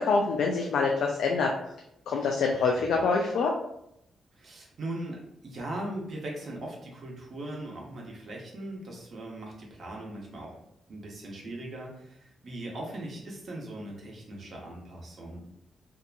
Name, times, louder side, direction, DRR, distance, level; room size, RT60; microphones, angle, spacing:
voice 1, 0.0-1.5 2.1-3.5, left 4 dB, 85° left, 0 dB, 0.3 m, -25 dB
voice 2, 4.3-10.6 10.9-15.4, right 1 dB, 55° right, -2 dB, 0.8 m, -39 dB
2.8 x 2.5 x 2.2 m, 0.78 s
cardioid pair, 85°, 0 cm